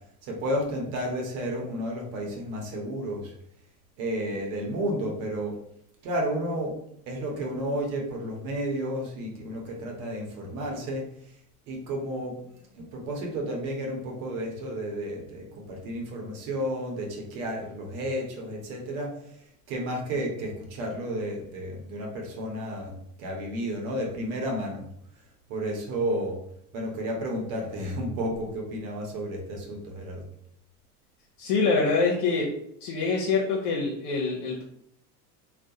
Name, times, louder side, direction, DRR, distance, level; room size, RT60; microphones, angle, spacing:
voice 1, 0.2-3.3 4.0-5.6 6.0-6.8 7.1-11.1 11.7-19.2 19.7-24.9 25.5-26.4 26.7-30.3, equal, 65° right, 0 dB, 0.9 m, -32 dB
voice 2, 31.4-32.4 32.8-34.6, left 4 dB, 75° left, -3 dB, 0.7 m, -25 dB
2.4 x 2.1 x 2.7 m, 0.72 s
hypercardioid pair, 85°, 45 cm